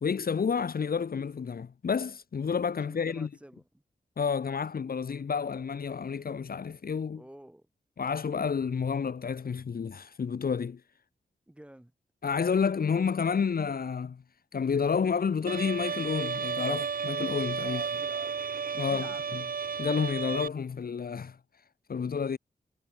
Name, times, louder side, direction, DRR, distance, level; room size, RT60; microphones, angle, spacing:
voice 1, 0.0-3.3 4.2-7.2 8.0-10.8 12.2-14.2 14.5-17.8 18.7-19.4 19.8-21.4 21.9-22.4, left 6 dB, 60° left, 1.3 m, -30 dB
voice 2, 2.8-3.8 7.1-7.7 11.5-11.9 17.6-18.4 18.8-19.2, right 1 dB, 5° right, 6.1 m, -49 dB
Bowed string instrument, 15.5-20.5, right 6 dB, 55° right, 1.0 m, -33 dB
wide cardioid pair, 140°, 17 cm